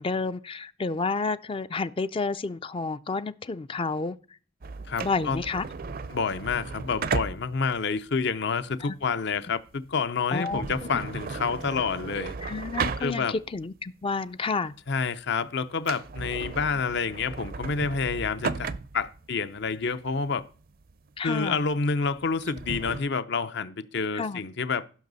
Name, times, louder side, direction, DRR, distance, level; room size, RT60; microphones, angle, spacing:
voice 1, 0.0-4.2 5.0-5.6 8.8-8.9 10.3-10.6 12.4-14.7 21.2-21.6 24.1-24.4, left 4 dB, 30° left, 0.4 m, -30 dB
sound 1, 4.6-13.6 14.0-14.1 14.7-15.0 15.3-15.4 15.7-23.0, right 4 dB, 50° right, 0.5 m, -35 dB
voice 2, 4.9-5.4 6.1-12.3 13.0-13.4 14.9-20.4 21.2-25.0, left 5 dB, 60° left, 0.7 m, -28 dB
15.5 x 6.2 x 4.0 m
head